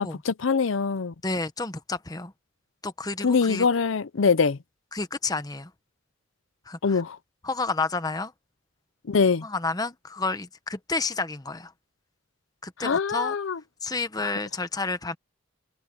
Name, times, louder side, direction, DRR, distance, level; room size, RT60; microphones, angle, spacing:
voice 1, 0.0-1.1 3.2-4.6 6.8-7.2 9.1-9.5 12.8-13.6 14.2-14.3, left 5 dB, 80° left, 0.6 m, -23 dB
voice 2, 1.2-2.3 2.8-3.7 4.9-5.7 6.7-7.0 7.4-8.3 9.4-11.7 12.6-13.4 13.8-15.2, left 3 dB, 20° left, 1.0 m, -30 dB
head